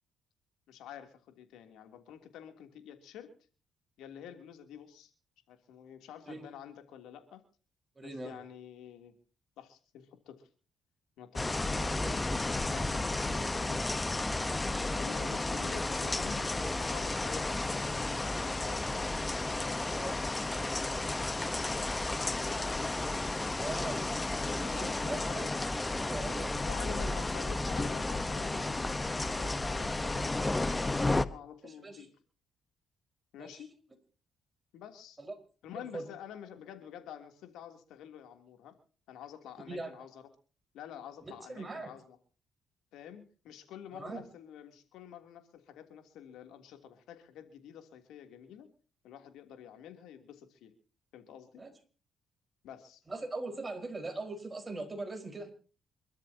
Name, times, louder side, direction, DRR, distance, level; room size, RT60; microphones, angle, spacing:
voice 1, 0.7-3.3 4.0-5.1 5.5-7.4 8.0-9.2 9.6-10.5 11.2-12.2 12.7-13.9 15.0-19.1 19.6-20.4 22.2-22.9 24.5-25.5 25.9-26.1 26.6-32.1 33.3-33.8 34.7-35.2 35.6-38.7 39.1-40.2 40.7-42.2 42.9-48.7 49.0-50.7 51.1-51.6 52.6-53.0, left 9 dB, 85° left, 6 dB, 3.1 m, -49 dB
voice 2, 7.9-8.4 19.9-20.2 23.6-24.1 24.5-25.5 25.9-26.6 26.9-27.2 31.6-32.1 33.4-33.6 35.2-35.3 35.7-36.0 39.7-40.1 41.2-41.9 43.9-44.2 51.6-51.7 53.1-55.5, right 2 dB, 25° right, 5 dB, 4.9 m, -41 dB
sound 1, 11.4-31.3, left 2 dB, 20° left, 1.0 m, -32 dB
27.5 x 13.5 x 2.9 m, 0.39 s
cardioid pair, 90°, 0 cm